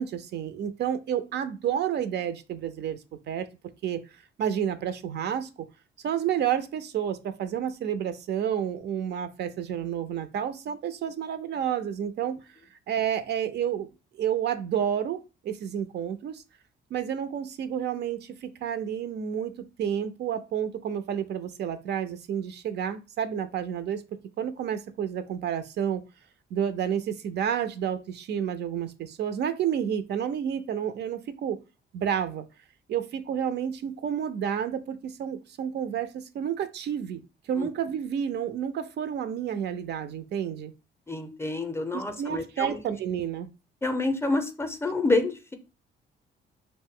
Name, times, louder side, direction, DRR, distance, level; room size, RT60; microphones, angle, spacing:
voice 1, 0.0-3.0 3.3-3.5 3.8-4.0 4.4-5.5 6.0-12.4 12.9-13.9 14.2-16.4 16.9-19.5 19.8-24.0 24.4-26.0 26.5-31.6 31.9-32.4 32.9-37.2 37.5-40.7 41.9-43.5, right 9 dB, 60° right, 11 dB, 0.4 m, -30 dB
voice 2, 41.1-42.8 43.8-45.5, left 2 dB, 15° left, 8 dB, 0.5 m, -28 dB
2.6 x 2.0 x 3.5 m, 0.30 s
cardioid pair, 90°, 20 cm